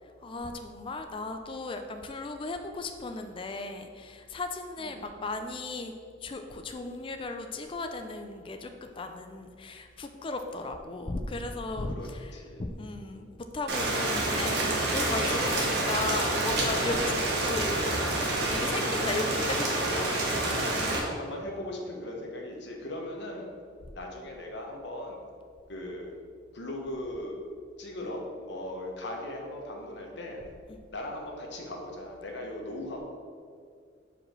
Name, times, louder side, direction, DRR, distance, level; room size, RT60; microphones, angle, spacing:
voice 1, 0.2-5.9 6.2-17.1 17.4-17.9 18.5-20.2, left 2 dB, 25° left, 6 dB, 0.4 m, -36 dB
voice 2, 11.9-12.6 20.9-23.5 23.9-25.2 25.7-26.1 26.5-27.4 27.8-30.4 30.9-33.0, left 1 dB, 60° left, 1 dB, 1.2 m, -38 dB
Rain, 13.7-21.0, right 2 dB, 55° right, 1.2 m, -28 dB
4.9 x 4.9 x 6.0 m, 2.2 s
head